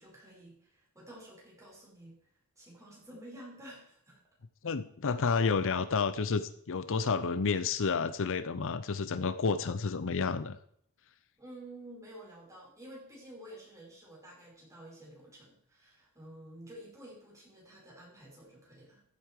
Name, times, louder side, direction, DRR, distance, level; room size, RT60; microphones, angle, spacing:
voice 1, 0.0-2.2 2.6-4.2 11.4-19.0, right 1 dB, 15° right, -3 dB, 5.6 m, -51 dB
voice 2, 4.6-10.6, left 5 dB, 60° left, 13 dB, 0.6 m, -30 dB
14.5 x 8.4 x 4.8 m, 0.66 s
head